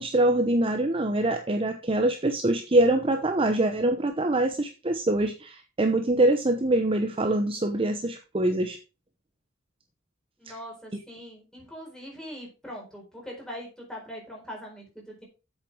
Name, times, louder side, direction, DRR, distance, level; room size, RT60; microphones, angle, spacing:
voice 1, 0.0-8.8 10.5-10.6, right 1 dB, 25° right, 5 dB, 0.8 m, -24 dB
voice 2, 10.4-15.2, equal, 5° left, -2 dB, 4.2 m, -41 dB
7.9 x 7.4 x 4.8 m, 0.32 s
head